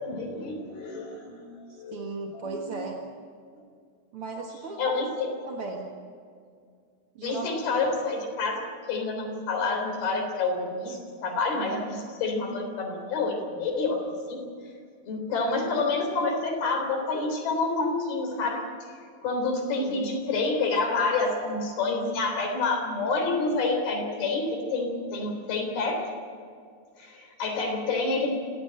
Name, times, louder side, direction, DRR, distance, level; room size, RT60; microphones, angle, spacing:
voice 1, 0.0-2.0 2.3-2.8 3.5-3.6 4.8-5.1 7.2-14.4 15.1-18.6 19.2-26.1 27.0-28.3, left 3 dB, 65° left, 3 dB, 5.5 m, -28 dB
voice 2, 1.7-3.0 4.1-5.2 5.5-6.0 7.1-7.5 19.8-20.2, right 3 dB, 55° right, 1 dB, 1.6 m, -37 dB
26.0 x 16.5 x 8.8 m, 2.2 s
omnidirectional pair, 4.9 m